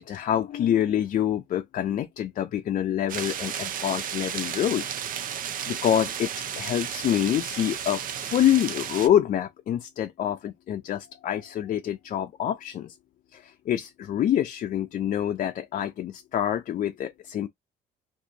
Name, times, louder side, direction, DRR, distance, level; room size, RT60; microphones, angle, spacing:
voice 1, 0.0-5.0 5.7-12.9 13.3-17.5, left 10 dB, 50° left, 0.5 m, -26 dB
sound 1, 3.1-9.1, right 8 dB, 55° right, 0.6 m, -33 dB
2.7 x 2.6 x 3.8 m
cardioid pair, 110°, 17 cm